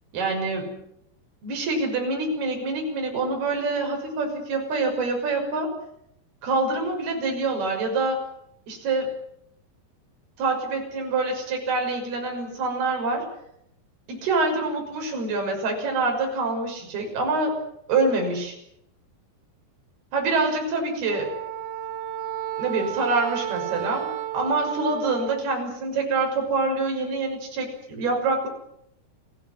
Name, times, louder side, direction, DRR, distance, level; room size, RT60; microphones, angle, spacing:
voice 1, 0.1-0.8 1.4-5.7 6.4-8.3 8.7-9.1 10.4-13.2 14.1-17.6 17.9-18.6 20.1-21.3 22.6-28.5, right 3 dB, 60° right, 2 dB, 8.2 m, -26 dB
Wind instrument woodwind instrument, 21.1-25.5, right 13 dB, 75° right, 3.9 m, -32 dB
28.5 x 17.0 x 9.9 m, 0.78 s
omnidirectional pair, 5.1 m